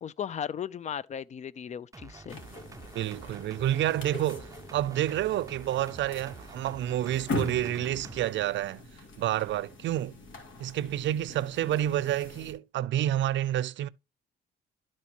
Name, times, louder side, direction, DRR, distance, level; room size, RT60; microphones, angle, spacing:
voice 1, 0.0-2.4, left 8 dB, 35° left, 0.4 m, -36 dB
sound 1, 1.9-8.3, right 4 dB, 15° right, 0.6 m, -48 dB
sound 2, 2.3-12.5, left 1 dB, 75° left, 2.3 m, -41 dB
voice 2, 2.9-8.8 9.2-10.1 10.6-13.9, right 12 dB, 70° right, 0.5 m, -29 dB
12.0 x 4.4 x 2.9 m
cardioid pair, 90°, 20 cm